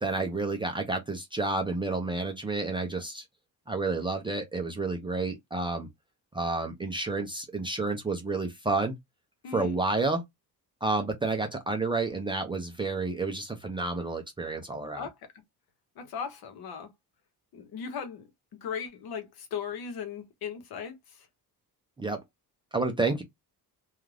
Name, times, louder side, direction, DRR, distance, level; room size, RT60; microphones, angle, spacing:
voice 1, 0.0-3.2 3.7-5.9 6.3-9.0 9.5-10.2 10.8-15.1 22.0-22.2 22.7-23.2, right 3 dB, 15° right, 0.3 m, -30 dB
voice 2, 16.0-16.9 17.5-18.2 18.6-21.0, left 7 dB, 70° left, 0.9 m, -37 dB
2.4 x 2.3 x 3.1 m
cardioid pair, 165°, 38 cm